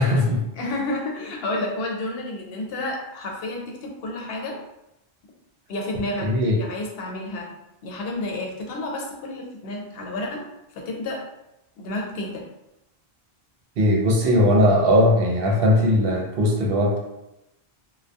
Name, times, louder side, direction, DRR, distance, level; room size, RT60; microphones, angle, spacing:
voice 1, 0.0-0.4 6.2-6.6 13.8-17.0, left 1 dB, 70° right, -1 dB, 0.8 m, -19 dB
voice 2, 0.6-4.6 5.7-6.3 6.5-7.5 7.8-10.4 10.7-11.2 11.8-12.4, left 2 dB, 75° left, 0 dB, 0.8 m, -30 dB
2.2 x 2.1 x 2.6 m, 0.88 s
omnidirectional pair, 1.0 m